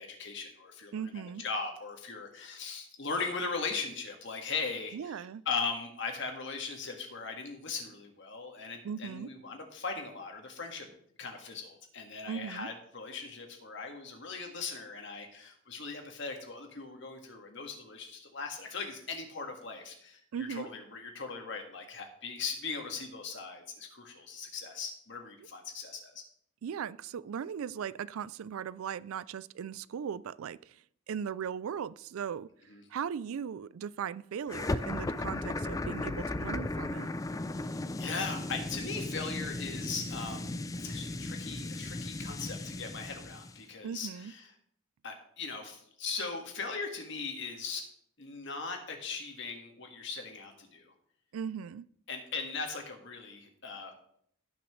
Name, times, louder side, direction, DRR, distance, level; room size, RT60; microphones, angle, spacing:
voice 1, 0.0-1.0 1.4-10.9 11.2-26.2 32.7-32.8 37.6-44.5 45.0-47.9 48.2-50.9 52.1-53.9, left 4 dB, 60° left, 1.8 m, -39 dB
voice 2, 0.9-1.4 4.9-5.4 8.8-9.3 12.3-12.7 20.3-20.7 26.6-32.5 32.9-37.1 43.8-44.3 51.3-51.9, right 7 dB, 80° right, 0.4 m, -38 dB
sound 1, 34.5-43.6, left 2 dB, 15° left, 0.3 m, -36 dB
17.5 x 5.9 x 3.2 m
head